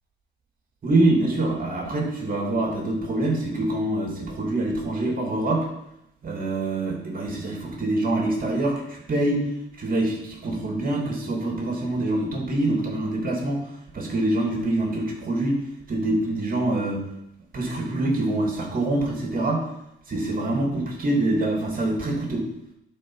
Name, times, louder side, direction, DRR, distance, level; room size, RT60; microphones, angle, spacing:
voice 1, 0.8-5.7 6.2-9.4 9.7-15.6 15.9-17.0 17.5-19.7 20.1-22.5, right 2 dB, 45° right, 0 dB, 2.7 m, -25 dB
11.5 x 4.8 x 4.8 m, 0.82 s
cardioid pair, 90°, 20 cm